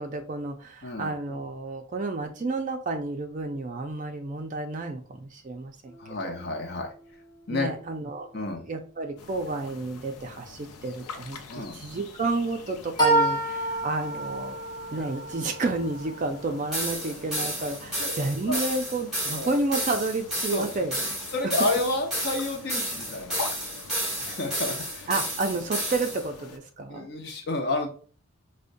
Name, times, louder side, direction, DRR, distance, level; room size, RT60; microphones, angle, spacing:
voice 1, 0.0-5.9 6.2-6.3 7.5-14.6 14.9-21.2 21.4-21.5 25.1-27.1, right 3 dB, 35° right, 5 dB, 0.4 m, -31 dB
sound 1, 5.9-6.3 13.0-18.7, right 1 dB, 20° left, 0.8 m, -30 dB
voice 2, 6.0-6.9 7.5-7.7 8.3-8.6 11.5-11.8 14.9-15.1 18.0-18.1 18.5-18.6 19.3-19.5 20.5-20.8 21.3-23.4 24.2-25.1 26.9-27.9, left 2 dB, 45° left, 3 dB, 0.6 m, -30 dB
sound 2, 9.2-26.6, left 4 dB, 85° left, 0.5 m, -45 dB
sound 3, 16.7-26.2, right 1 dB, ahead, 1.1 m, -31 dB
5.0 x 2.1 x 2.5 m, 0.42 s
head